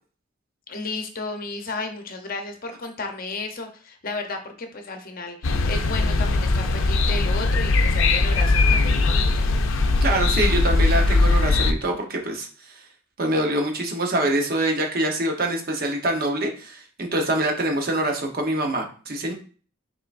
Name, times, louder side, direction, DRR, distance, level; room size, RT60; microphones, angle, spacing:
voice 1, 0.7-9.6, left 3 dB, 45° left, 5 dB, 0.7 m, -33 dB
sound 1, 5.4-11.7, left 3 dB, 80° left, 0.5 m, -20 dB
voice 2, 10.0-12.7 13.2-19.3, right 1 dB, 45° right, 2 dB, 0.9 m, -25 dB
5.5 x 3.7 x 2.5 m, 0.40 s
head